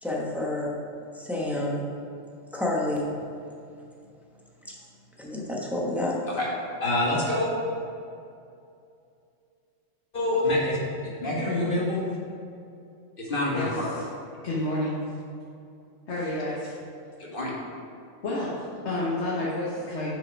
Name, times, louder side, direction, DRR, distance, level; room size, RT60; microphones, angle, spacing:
voice 1, 0.0-0.8 1.1-1.8 2.5-3.1 4.6-4.8 5.2-6.2, left 1 dB, ahead, -4 dB, 1.0 m, -29 dB
voice 2, 6.8-7.5 10.1-12.0 13.2-13.9 17.2-17.5, left 1 dB, 40° left, -4 dB, 1.7 m, -26 dB
voice 3, 13.5-14.1 14.4-15.0 16.1-16.8 18.2-20.1, left 1 dB, 60° left, -6 dB, 1.4 m, -30 dB
6.6 x 5.6 x 5.2 m, 2.5 s
omnidirectional pair, 1.4 m